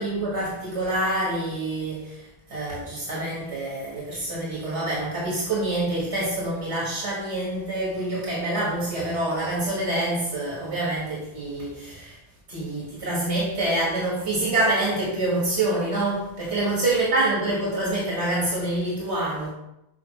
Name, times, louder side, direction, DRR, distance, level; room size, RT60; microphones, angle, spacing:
voice 1, 0.0-12.2 12.5-19.5, right 2 dB, 90° right, -6 dB, 2.1 m, -26 dB
6.7 x 5.5 x 3.3 m, 0.85 s
omnidirectional pair, 1.1 m